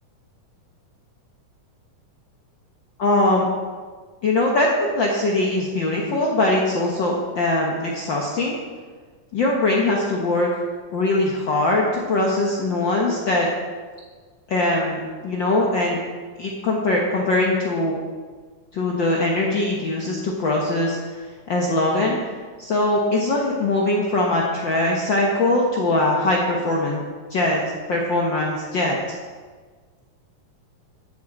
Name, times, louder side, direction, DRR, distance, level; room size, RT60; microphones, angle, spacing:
voice 1, 3.0-3.5 4.2-8.5 9.3-10.5 10.9-13.5 14.5-16.0 16.4-18.0 18.7-21.0 21.5-22.2 22.6-27.0 27.3-29.0, left 2 dB, 75° left, -2 dB, 1.0 m, -21 dB
13.5 x 7.4 x 3.8 m, 1.5 s
omnidirectional pair, 3.6 m